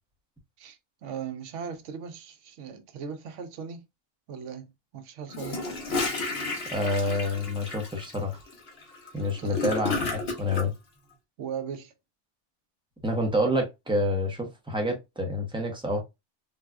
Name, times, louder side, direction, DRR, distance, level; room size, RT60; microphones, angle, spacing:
voice 1, 0.6-3.8 4.3-5.6 9.4-9.8 11.4-11.9, right 7 dB, 80° right, 1.0 m, -38 dB
Gurgling / Toilet flush, 5.3-10.7, left 3 dB, 60° left, 1.2 m, -32 dB
voice 2, 6.7-8.4 9.1-10.7 13.0-16.0, left 1 dB, 5° right, 0.6 m, -28 dB
3.9 x 2.3 x 2.2 m
omnidirectional pair, 1.2 m